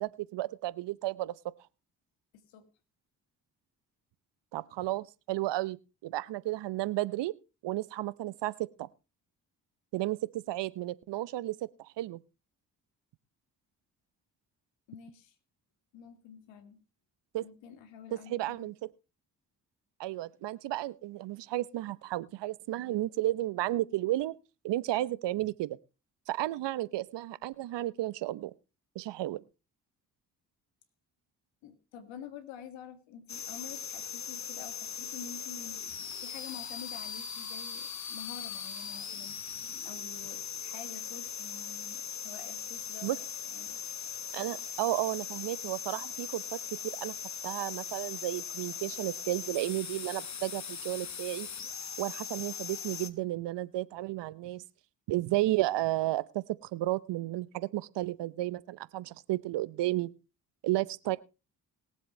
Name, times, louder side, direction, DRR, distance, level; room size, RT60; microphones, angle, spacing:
voice 1, 0.0-1.3 4.5-5.8 6.0-7.3 7.6-8.9 9.9-12.2 17.3-17.5 18.1-18.7 20.0-24.4 24.6-25.8 26.3-28.5 28.9-29.4 43.0-43.2 44.3-46.6 46.8-47.1 47.4-51.5 52.0-54.6 55.1-60.1 60.6-61.2, right 16 dB, 65° right, 19 dB, 0.8 m, -33 dB
voice 2, 2.3-2.7 14.9-15.4 15.9-16.8 17.4-18.7 31.6-35.8 36.2-39.4 39.8-43.2 43.5-43.8, left 7 dB, 75° left, 8 dB, 2.2 m, -48 dB
sound 1, 33.3-53.1, left 7 dB, 35° left, 1.4 m, -40 dB
21.5 x 7.7 x 3.2 m, 0.29 s
hypercardioid pair, 45°, 46 cm